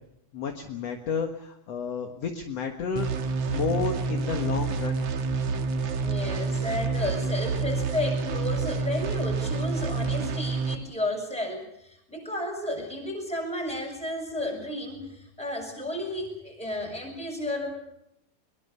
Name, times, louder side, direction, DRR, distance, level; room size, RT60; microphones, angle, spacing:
voice 1, 0.3-5.0, left 6 dB, 55° left, 4 dB, 2.0 m, -31 dB
sound 1, 3.0-10.7, right 4 dB, 60° right, 1.8 m, -28 dB
voice 2, 6.0-17.7, left 1 dB, ahead, 1 dB, 6.9 m, -32 dB
24.0 x 22.5 x 7.0 m, 0.79 s
omnidirectional pair, 4.7 m